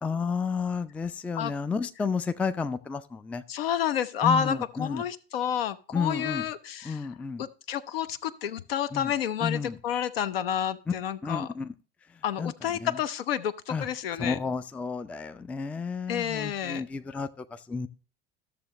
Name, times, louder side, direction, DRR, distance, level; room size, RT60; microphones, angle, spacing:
voice 1, 0.0-3.4 4.2-5.1 5.9-6.5 6.8-7.4 8.9-9.1 9.4-9.8 10.9-11.0 11.2-11.7 12.4-13.0 13.7-13.9 14.2-17.9, left 5 dB, 5° left, 0.3 m, -31 dB
voice 2, 3.5-7.0 7.4-11.5 12.2-14.4 16.1-16.8, left 9 dB, 70° left, 0.6 m, -30 dB
13.0 x 6.8 x 2.9 m
figure-of-eight pair, 70°, 30 cm